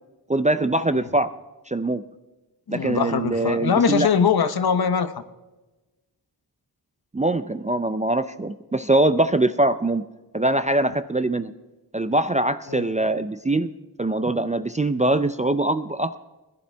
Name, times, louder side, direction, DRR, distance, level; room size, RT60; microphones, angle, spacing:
voice 1, 0.3-1.3 1.7-2.0 2.7-4.1 7.1-10.0 10.3-11.5 11.9-13.7 14.0-16.2, right 2 dB, 20° right, 10 dB, 0.4 m, -22 dB
voice 2, 2.7-5.1 12.7-12.9, left 6 dB, 60° left, 11 dB, 0.8 m, -22 dB
21.0 x 11.5 x 3.4 m, 1.1 s
wide cardioid pair, 120°, 42 cm